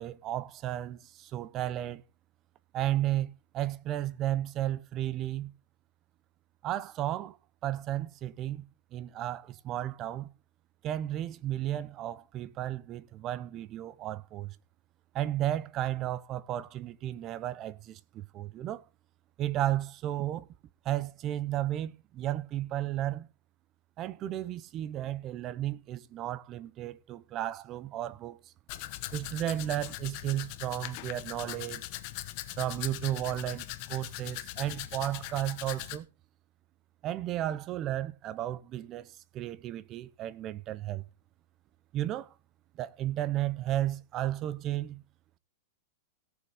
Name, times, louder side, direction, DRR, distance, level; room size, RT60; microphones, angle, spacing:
voice 1, 0.0-2.0 2.7-5.5 6.6-7.4 7.6-8.7 8.9-10.3 10.8-14.6 15.1-18.8 19.4-20.5 20.8-23.3 24.0-28.5 29.1-31.9 32.6-36.1 37.0-41.0 41.9-42.3 42.8-45.0, right 13 dB, 25° right, 0.6 m, -33 dB
Domestic sounds home sounds, 28.7-36.0, left 16 dB, 40° left, 1.1 m, -40 dB
17.0 x 6.8 x 5.0 m
supercardioid pair, 160°, 0 cm